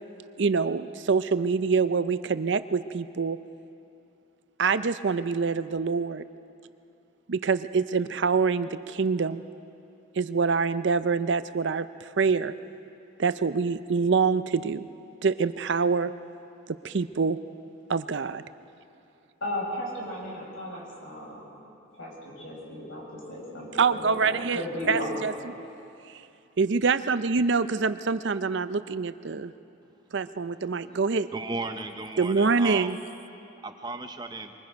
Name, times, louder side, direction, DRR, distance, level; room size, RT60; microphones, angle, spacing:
voice 1, 0.4-3.4 4.6-6.2 7.3-9.4 10.2-12.5 13.2-14.9 15.2-16.1 16.8-17.4 17.9-18.4 23.8-24.6 24.9-25.5 26.6-29.5 30.1-31.3 32.2-33.0, right 5 dB, 60° right, 13 dB, 0.5 m, -25 dB
voice 2, 19.4-21.4 22.0-25.3, left 1 dB, 75° left, -2 dB, 6.2 m, -35 dB
voice 3, 31.3-33.0 33.6-34.5, right 3 dB, 20° right, 7 dB, 0.7 m, -35 dB
24.0 x 23.5 x 5.3 m, 2.7 s
head